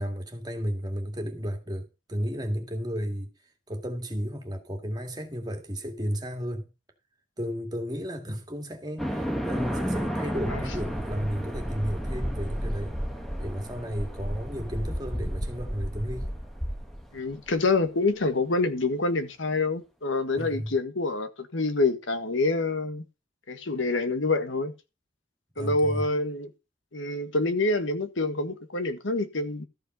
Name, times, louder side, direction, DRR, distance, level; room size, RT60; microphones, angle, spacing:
voice 1, 0.0-3.3 3.7-6.7 7.4-13.0 13.4-16.3 20.4-20.7 25.5-26.1, equal, 20° right, 2.1 m, -33 dB
sound 1, 9.0-17.5, equal, ahead, 1.4 m, -32 dB
voice 2, 17.1-23.0 23.5-24.7 25.6-26.5 26.9-29.6, left 3 dB, 90° left, 1.6 m, -27 dB
13.5 x 5.4 x 5.5 m
head